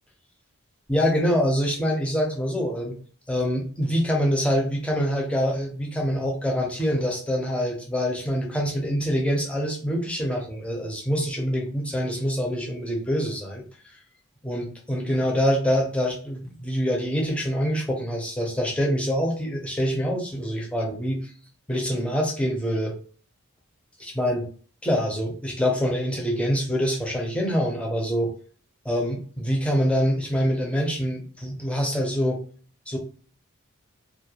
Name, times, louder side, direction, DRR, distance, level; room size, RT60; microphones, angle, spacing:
voice 1, 0.9-3.0 3.3-13.6 14.4-21.2 21.7-23.0 24.0-24.5 24.8-28.3 28.8-32.4 32.9-33.0, equal, 5° left, -1 dB, 0.5 m, -25 dB
2.3 x 2.1 x 2.8 m, 0.43 s
head